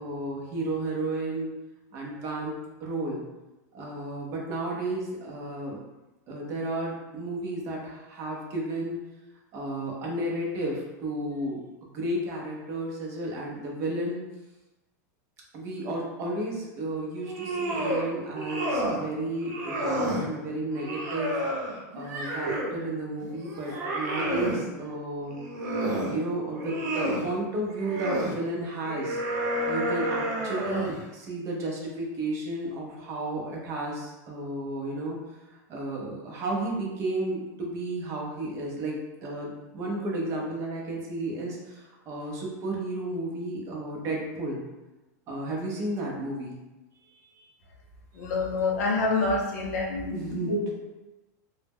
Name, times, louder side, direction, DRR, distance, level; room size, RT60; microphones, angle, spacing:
voice 1, 0.0-1.5 1.9-3.2 3.7-5.8 6.3-9.0 9.5-11.6 11.9-14.2 15.5-21.4 21.9-25.4 25.9-29.2 29.7-35.2 35.7-44.6 45.3-46.5 50.1-50.7, right 1 dB, 30° right, -2 dB, 0.5 m, -32 dB
sound 1, 17.2-18.1 18.3-19.0 19.4-20.3 20.7-22.8 23.2-24.6 25.3-26.2 26.5-27.3 27.8-28.3 28.9-31.0, right 1 dB, 90° right, 0.7 m, -30 dB
voice 2, 48.1-50.2 50.5-50.7, left 3 dB, 70° left, -2 dB, 0.7 m, -27 dB
2.1 x 2.0 x 3.4 m, 1.1 s
supercardioid pair, 160°, 9 cm